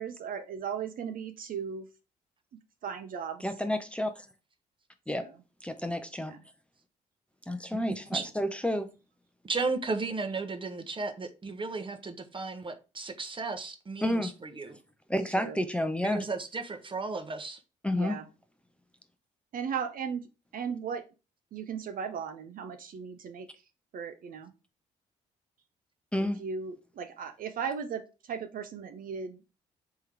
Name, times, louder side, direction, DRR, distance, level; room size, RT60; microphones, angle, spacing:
voice 1, 0.0-1.9 2.8-3.4 5.2-5.3 6.3-6.4 15.4-15.6 17.9-18.2 19.5-20.3 20.5-21.0 21.5-23.5 23.9-24.5 26.4-29.4, right 7 dB, 55° right, 0.5 m, -36 dB
voice 2, 3.4-4.3 5.1-5.3 5.6-6.3 7.5-8.9 14.0-14.3 15.1-16.2 17.8-18.2 26.1-26.4, left 1 dB, 5° left, 0.7 m, -30 dB
voice 3, 9.4-14.8 16.0-17.6, right 4 dB, 30° right, 0.9 m, -34 dB
3.7 x 3.1 x 4.6 m
hypercardioid pair, 45°, 18 cm